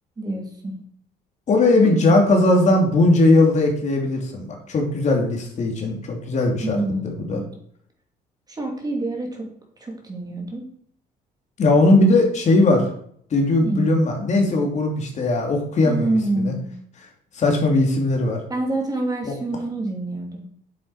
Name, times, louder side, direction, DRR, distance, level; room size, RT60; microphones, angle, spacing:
voice 1, 0.2-0.7 1.8-2.1 6.6-7.4 8.5-9.5 9.8-10.7 13.6-13.8 15.8-16.6 18.5-20.4, right 2 dB, 20° right, 1 dB, 2.7 m, -27 dB
voice 2, 1.5-6.8 7.0-7.4 11.6-12.9 13.3-16.5 17.3-18.4 19.2-19.3, left 2 dB, 45° left, 1 dB, 2.7 m, -19 dB
8.6 x 7.5 x 4.8 m, 0.63 s
cardioid pair, 110°, 17 cm